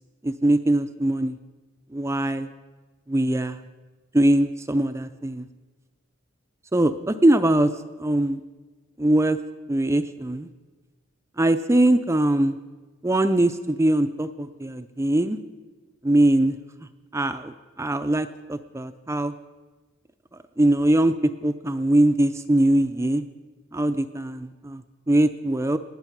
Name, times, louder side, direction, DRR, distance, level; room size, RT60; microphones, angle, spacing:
voice 1, 0.2-1.3 1.9-2.5 3.1-3.6 4.1-5.5 6.7-7.7 8.0-8.4 9.0-9.4 9.7-10.5 11.4-12.6 13.0-15.4 16.0-16.6 17.1-19.3 20.6-23.2 23.7-24.8 25.1-25.8, right 1 dB, 15° right, 10 dB, 0.4 m, -22 dB
18.5 x 9.0 x 6.0 m, 1.3 s
head